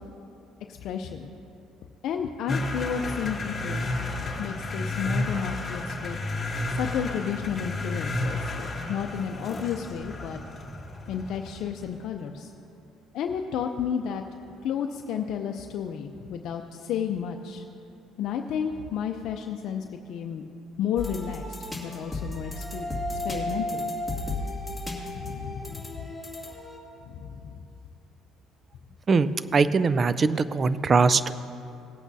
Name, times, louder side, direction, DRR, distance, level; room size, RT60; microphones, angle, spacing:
voice 1, 0.7-1.3 2.0-3.9 4.2-6.2 6.7-10.4 11.1-12.5 13.1-14.2 14.6-17.6 18.2-20.4 20.8-21.4 21.8-22.9 23.2-23.9 25.1-25.6 27.1-27.4, left 8 dB, 70° left, 4 dB, 0.5 m, -32 dB
sound 1, 2.5-11.9, left 2 dB, 30° left, 1.3 m, -32 dB
sound 2, 21.0-26.8, left 1 dB, 5° left, 2.2 m, -34 dB
voice 2, 29.1-31.3, right 4 dB, 35° right, 15 dB, 0.4 m, -22 dB
18.5 x 8.4 x 2.7 m, 2.7 s
cardioid pair, 95°, 0 cm